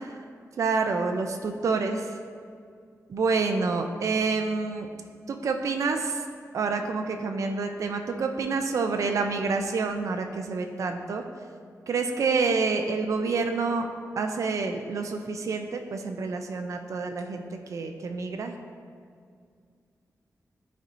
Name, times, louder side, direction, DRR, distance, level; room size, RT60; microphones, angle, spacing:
voice 1, 0.6-2.2 3.1-4.9 5.3-6.2 6.5-11.2 11.9-13.9 14.2-17.4 17.7-18.5, right 4 dB, 60° right, 5 dB, 0.4 m, -28 dB
11.0 x 4.3 x 2.6 m, 2.2 s
wide cardioid pair, 165°, 6 cm